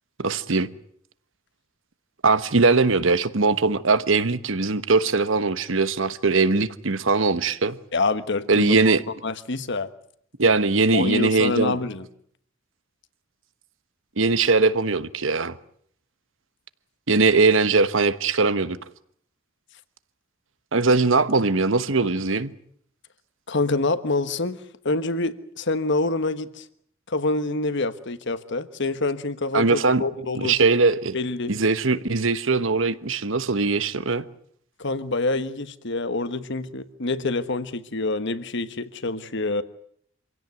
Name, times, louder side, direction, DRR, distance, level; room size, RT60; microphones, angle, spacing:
voice 1, 0.2-0.7 2.2-7.8 8.5-9.0 10.4-11.8 14.2-15.6 17.1-18.8 20.7-22.5 29.5-30.0 30.3-31.2 31.5-34.2, right 3 dB, 70° right, 1.1 m, -21 dB
voice 2, 7.9-8.9 9.2-9.9 10.9-12.0 23.5-24.6 24.8-26.6 27.1-30.5 31.1-31.6 34.8-39.6, left 3 dB, 60° left, 1.4 m, -26 dB
26.0 x 17.0 x 9.4 m
head